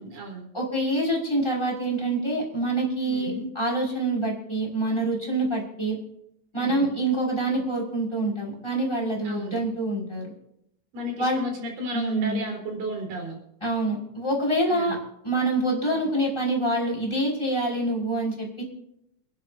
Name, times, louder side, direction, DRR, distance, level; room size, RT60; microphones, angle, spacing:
voice 1, 0.0-0.5 3.0-3.5 6.5-6.9 9.2-9.6 10.9-13.4 14.7-15.0, equal, 80° right, 2 dB, 5.6 m, -34 dB
voice 2, 0.5-6.0 6.5-10.3 11.2-11.4 11.9-12.4 13.6-15.0 15.2-18.6, right 1 dB, 5° left, -1 dB, 5.5 m, -26 dB
28.5 x 11.0 x 2.7 m, 0.76 s
omnidirectional pair, 3.9 m